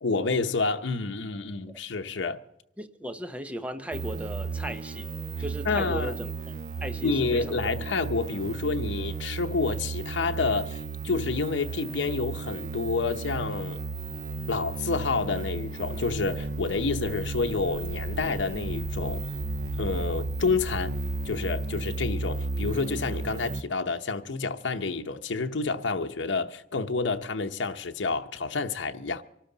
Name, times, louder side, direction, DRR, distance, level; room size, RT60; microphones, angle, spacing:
voice 1, 0.0-2.4 5.6-6.2 7.0-13.8 14.5-19.2 19.8-20.9 21.2-29.2, left 3 dB, 80° left, 0.8 m, -29 dB
voice 2, 2.8-5.1 5.4-6.6 6.8-7.7, right 1 dB, 5° right, 0.8 m, -36 dB
sound 1, 3.9-23.6, right 3 dB, 45° right, 0.5 m, -34 dB
sound 2, 19.8-21.4, equal, 25° right, 6.8 m, -42 dB
24.5 x 12.5 x 4.0 m
head